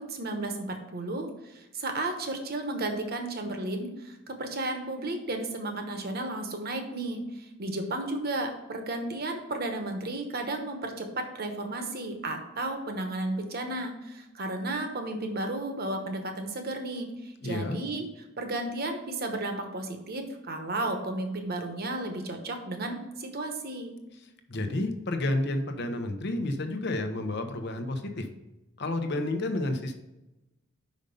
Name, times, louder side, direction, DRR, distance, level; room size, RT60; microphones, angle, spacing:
voice 1, 0.0-7.2 7.6-18.1 18.4-23.9, right 2 dB, 50° right, 5 dB, 1.1 m, -33 dB
voice 2, 17.4-17.8 24.5-28.3 28.8-29.9, left 2 dB, 55° left, 6 dB, 0.8 m, -30 dB
5.3 x 5.3 x 5.3 m, 0.97 s
head